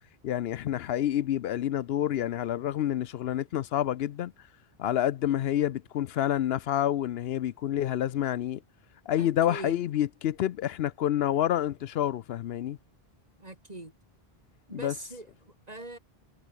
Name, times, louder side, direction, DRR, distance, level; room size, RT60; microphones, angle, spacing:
voice 1, 0.2-4.3 4.8-8.6 9.1-12.8 14.7-14.9, left 11 dB, 75° left, 0.8 m, -28 dB
voice 2, 9.2-9.8 13.4-13.9 14.7-16.0, right 2 dB, 40° right, 3.2 m, -42 dB
omnidirectional pair, 1.0 m